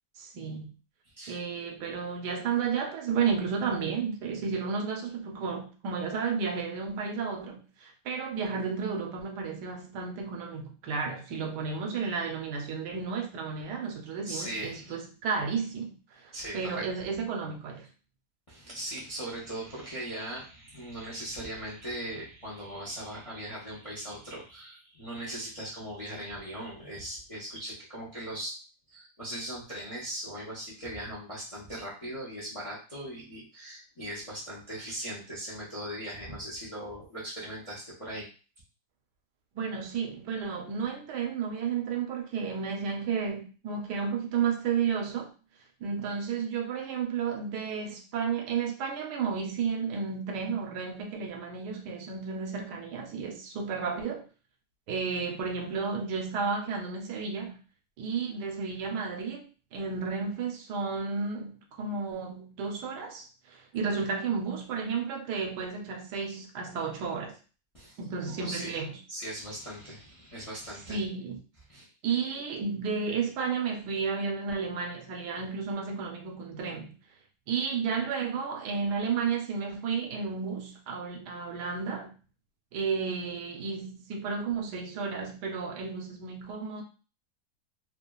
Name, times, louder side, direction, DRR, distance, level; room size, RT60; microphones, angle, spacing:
voice 1, 0.2-0.7 1.3-16.0 16.2-17.9 39.5-45.3 45.8-54.2 54.9-57.6 58.0-67.4 68.0-68.9 70.9-71.4 72.0-76.9 77.5-82.1 82.7-86.8, right 5 dB, 80° right, 1.2 m, -32 dB
voice 2, 14.2-15.0 16.3-16.9 18.5-28.5 28.9-38.3 67.7-68.0 68.3-68.8 69.1-71.0 71.7-71.9, right 1 dB, 40° left, 0.5 m, -39 dB
2.9 x 2.4 x 2.2 m
omnidirectional pair, 1.8 m